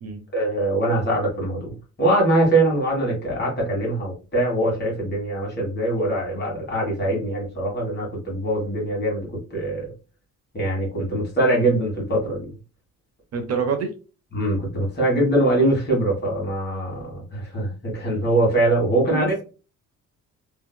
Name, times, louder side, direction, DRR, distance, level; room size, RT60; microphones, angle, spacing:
voice 1, 0.3-9.8 10.5-12.5 14.3-19.3, right 1 dB, 35° left, -3 dB, 1.5 m, -23 dB
voice 2, 13.3-13.9 19.1-19.4, right 5 dB, 55° right, 6 dB, 0.6 m, -26 dB
2.8 x 2.8 x 2.2 m, 0.34 s
cardioid pair, 155°, 30 cm